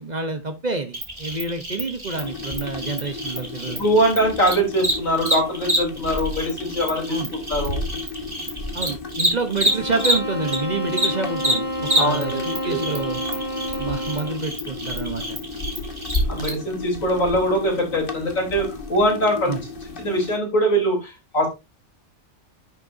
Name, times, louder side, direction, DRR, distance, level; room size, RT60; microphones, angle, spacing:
voice 1, 0.0-3.8 7.1-7.3 8.7-13.2 13.8-15.4 19.5-19.6, right 3 dB, 35° right, 1.0 m, -28 dB
Cricket, 0.9-10.6 10.9-16.5, equal, 20° right, 2.4 m, -27 dB
sound 1, 2.1-20.4, left 3 dB, 45° left, 1.5 m, -33 dB
voice 2, 3.8-7.2 7.5-7.8 12.0-13.0 16.3-19.6 20.0-21.5, right 1 dB, 90° left, 4.0 m, -22 dB
sound 2, 9.7-14.5, equal, 60° right, 2.7 m, -30 dB
10.5 x 6.6 x 2.6 m
omnidirectional pair, 1.3 m